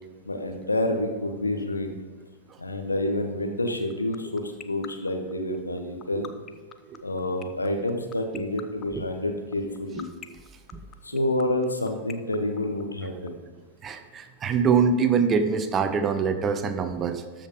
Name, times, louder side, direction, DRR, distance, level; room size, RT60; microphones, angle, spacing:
voice 1, 0.2-2.0 2.6-6.3 7.0-10.1 11.0-13.4, left 1 dB, 80° left, 4 dB, 1.1 m, -28 dB
sound 1, 3.7-13.3, left 9 dB, 25° left, 0.5 m, -41 dB
voice 2, 13.8-17.5, right 6 dB, 25° right, 9 dB, 0.8 m, -24 dB
13.0 x 5.1 x 5.1 m, 1.4 s
figure-of-eight pair, 90°, 0 cm